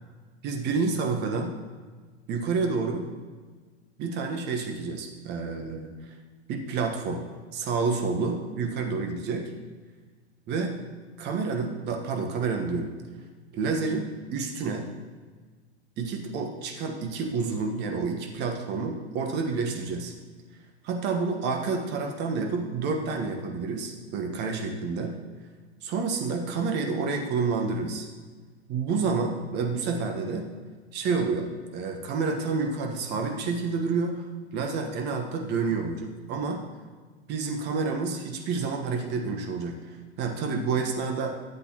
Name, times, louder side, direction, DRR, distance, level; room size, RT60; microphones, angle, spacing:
voice 1, 0.4-1.6 2.3-3.1 4.0-5.9 6.5-7.2 7.5-9.5 10.5-10.7 11.2-12.9 13.5-14.9 16.0-20.1 20.8-25.1 25.8-28.1 28.7-30.5 30.9-34.3 34.5-36.6 37.3-41.4, right 4 dB, 30° right, 3 dB, 1.4 m, -29 dB
12.0 x 8.2 x 3.0 m, 1.4 s
figure-of-eight pair, 95°, 33 cm